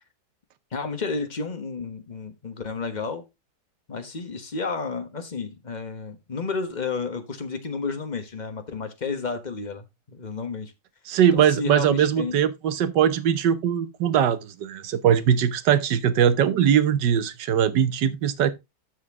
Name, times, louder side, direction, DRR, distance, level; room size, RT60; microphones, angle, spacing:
voice 1, 0.7-3.2 3.9-10.7 11.3-12.4, left 4 dB, 30° left, 1.2 m, -31 dB
voice 2, 11.1-18.5, right 9 dB, 85° right, 1.5 m, -21 dB
12.5 x 4.5 x 3.6 m
omnidirectional pair, 1.8 m